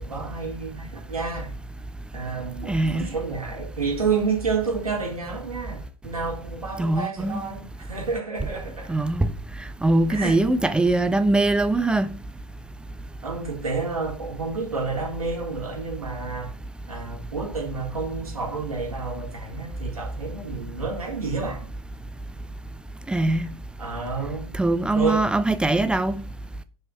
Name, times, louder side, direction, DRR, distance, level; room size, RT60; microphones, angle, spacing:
voice 1, 0.0-1.5 2.1-9.0 10.1-10.4 13.2-16.5 16.9-21.7 23.8-24.5 24.9-25.3, right 4 dB, 80° right, 4.0 m, -30 dB
voice 2, 2.7-3.1 6.8-7.4 8.9-9.3 9.8-12.1 23.1-23.5 24.6-26.2, right 2 dB, 5° right, 0.5 m, -22 dB
7.3 x 5.7 x 6.3 m
figure-of-eight pair, 105°, 18 cm